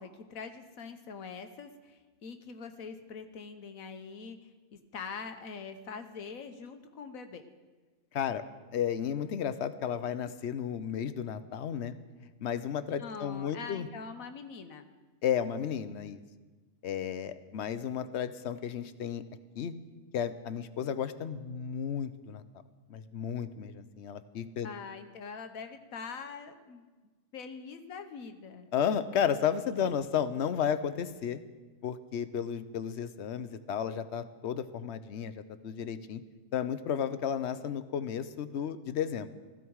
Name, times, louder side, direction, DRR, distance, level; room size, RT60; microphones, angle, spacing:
voice 1, 0.0-7.4 13.0-14.9 24.6-26.9 27.3-28.7, left 5 dB, 75° left, 8 dB, 1.4 m, -43 dB
voice 2, 8.7-11.9 12.4-13.9 15.2-16.2 16.8-19.2 19.6-19.7 20.1-22.4 22.9-24.7 28.7-31.4 31.8-36.2 36.5-39.3, left 8 dB, 60° left, 13 dB, 0.9 m, -33 dB
16.0 x 14.5 x 4.7 m, 1.3 s
omnidirectional pair, 1.4 m